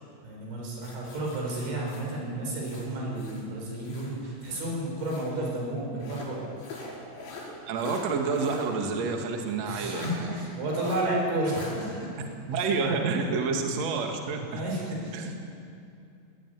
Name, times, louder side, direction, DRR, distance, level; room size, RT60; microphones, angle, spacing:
voice 1, 0.2-6.5 9.6-12.1 13.2-13.3 14.5-15.4, right 1 dB, 90° right, -1 dB, 7.9 m, -32 dB
sound 1, 0.8-3.5 3.8-5.4 6.0-8.7 9.1-9.2 9.9-10.2 10.7-11.0 11.5-11.7, left 2 dB, 85° left, 7.4 m, -43 dB
voice 2, 7.7-10.3 12.5-14.6 15.1-15.3, right 4 dB, 50° right, 3 dB, 2.3 m, -29 dB
19.0 x 18.5 x 9.6 m, 2.5 s
omnidirectional pair, 5.3 m